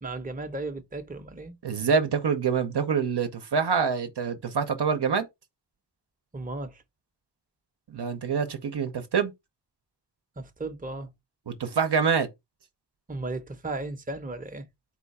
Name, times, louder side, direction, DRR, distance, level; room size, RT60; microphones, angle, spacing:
voice 1, 0.0-1.5 6.3-6.8 10.4-11.1 13.1-14.7, right 2 dB, 20° right, 0.7 m, -35 dB
voice 2, 1.6-5.3 7.9-9.3 11.5-12.3, right 6 dB, 70° right, 0.8 m, -26 dB
4.3 x 2.3 x 4.1 m
cardioid pair, 40°, 42 cm